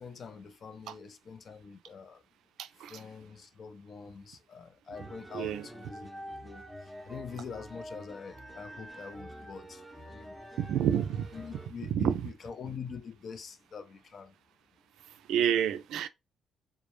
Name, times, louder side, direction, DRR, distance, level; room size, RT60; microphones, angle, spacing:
voice 1, 0.0-2.2 2.8-10.3 11.3-14.3, left 6 dB, 50° left, 0.4 m, -45 dB
voice 2, 2.6-3.0 5.3-5.6 10.6-11.3 11.9-12.2 15.3-16.1, right 9 dB, 85° right, 0.3 m, -29 dB
sound 1, 4.9-11.7, equal, ahead, 0.6 m, -47 dB
2.1 x 2.0 x 2.9 m
cardioid pair, 90°, 0 cm